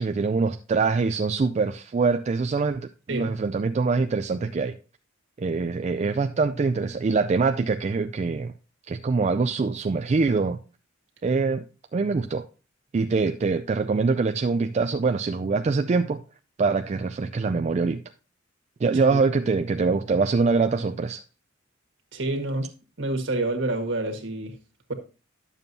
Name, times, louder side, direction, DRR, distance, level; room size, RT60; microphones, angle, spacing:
voice 1, 0.0-4.8 5.4-8.5 8.9-10.6 11.2-11.6 11.9-12.5 12.9-16.2 16.6-18.0 18.8-21.2, right 4 dB, 35° right, 0.3 m, -24 dB
voice 2, 22.1-22.7 23.0-24.5, right 2 dB, 65° right, 1.6 m, -28 dB
10.5 x 7.1 x 2.7 m
head